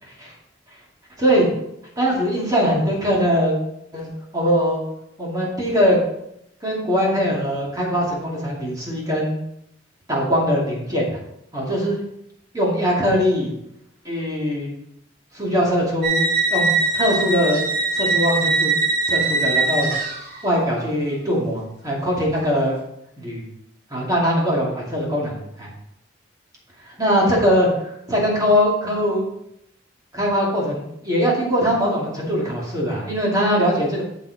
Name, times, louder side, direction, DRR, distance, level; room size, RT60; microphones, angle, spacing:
voice 1, 0.0-0.3 1.2-1.5 2.0-3.6 3.9-4.8 5.2-6.0 6.6-9.4 10.1-11.2 11.5-12.1 12.5-13.5 14.0-14.7 15.3-17.7 17.9-18.8 19.1-19.9 20.4-22.8 23.2-23.4 23.9-25.7 26.9-29.2 30.1-34.0, equal, 20° right, -4 dB, 2.6 m, -21 dB
sound 1, 16.0-20.5, right 3 dB, 55° right, 3.0 m, -21 dB
7.5 x 7.3 x 4.2 m, 0.78 s
head